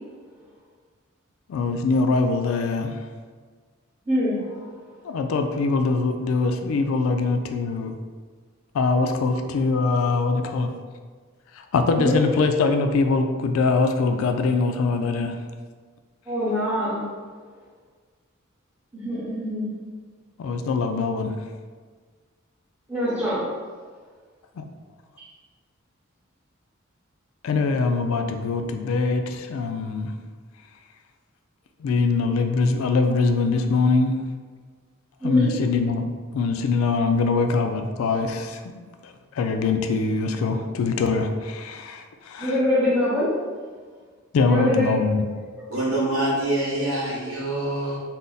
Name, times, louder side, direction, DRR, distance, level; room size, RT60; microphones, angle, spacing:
voice 1, 1.5-3.0 5.0-7.9 8.7-10.7 11.5-15.3 20.4-21.3 24.6-24.7 27.4-30.1 31.8-34.2 35.2-36.1 36.3-42.6 44.3-45.2, left 4 dB, 80° left, 6 dB, 0.3 m, -23 dB
voice 2, 4.1-4.7 12.0-12.2 16.3-17.1 18.9-19.7 22.9-23.5 25.2-25.3 35.2-35.6 42.4-43.4 44.4-45.0 45.6-45.7, left 1 dB, 10° right, -11 dB, 0.6 m, -24 dB
voice 3, 45.7-48.0, right 1 dB, 90° right, -6 dB, 1.1 m, -25 dB
2.6 x 2.1 x 3.8 m, 1.5 s
head